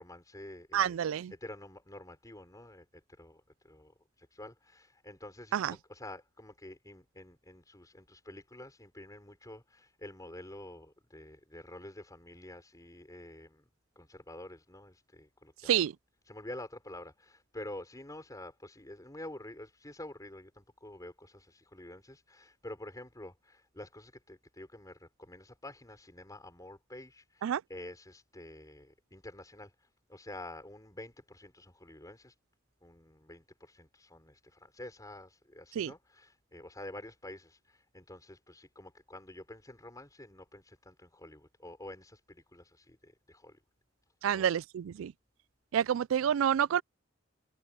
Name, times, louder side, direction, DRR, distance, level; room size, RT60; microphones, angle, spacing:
voice 1, 0.0-13.6 14.0-15.8 16.3-29.7 30.1-32.3 32.8-43.6 44.3-44.6, left 1 dB, 20° left, 4.4 m, -48 dB
voice 2, 0.7-1.3 5.5-5.7 15.7-15.9 27.4-27.6 35.8-35.9 44.2-45.1 45.7-46.8, right 9 dB, 85° right, 0.3 m, -28 dB
head